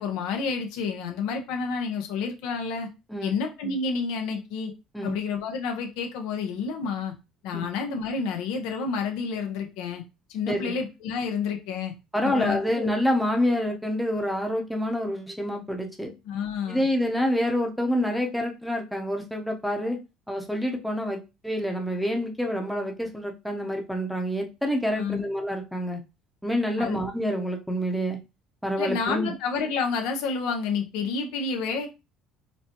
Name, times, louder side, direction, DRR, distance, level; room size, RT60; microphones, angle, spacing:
voice 1, 0.0-2.9 3.2-4.7 5.0-7.1 7.4-10.0 10.3-11.9 12.2-12.9 16.3-16.9 25.0-25.2 26.8-27.0 28.8-31.9, left 5 dB, 80° left, 4 dB, 0.8 m, -29 dB
voice 2, 10.5-10.8 12.1-16.1 16.7-20.0 20.3-26.0 26.4-28.2 28.6-29.3, equal, ahead, 2 dB, 0.8 m, -27 dB
4.2 x 2.2 x 2.8 m, 0.26 s
supercardioid pair, 100°, 0 cm